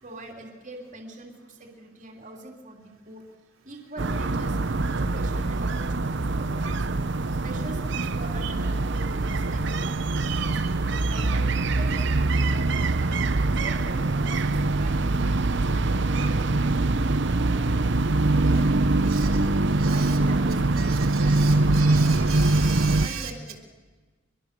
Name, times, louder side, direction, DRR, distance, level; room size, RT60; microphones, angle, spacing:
voice 1, 0.0-3.3 3.6-4.6 4.9-6.9 7.4-10.0 10.4-10.6 11.1-13.2 13.6-17.9 18.3-19.6 19.9-22.1 23.0-23.6, right 2 dB, 35° right, 2 dB, 3.0 m, -43 dB
sound 1, 4.0-23.1, right 2 dB, 55° right, 0.8 m, -23 dB
voice 2, 10.2-10.6 19.1-19.3 19.8-20.2 20.8-23.3, right 9 dB, 85° right, 1 dB, 3.2 m, -37 dB
24.5 x 22.5 x 6.7 m, 1.3 s
head